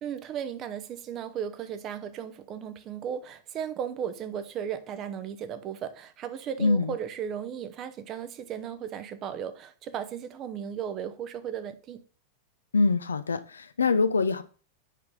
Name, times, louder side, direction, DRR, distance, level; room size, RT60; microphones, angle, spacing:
voice 1, 0.0-12.0, right 8 dB, 35° right, 0.8 m, -36 dB
voice 2, 6.6-6.9 12.7-14.4, left 4 dB, 75° left, 0.6 m, -24 dB
8.3 x 5.5 x 3.9 m
figure-of-eight pair, 90°, 0 cm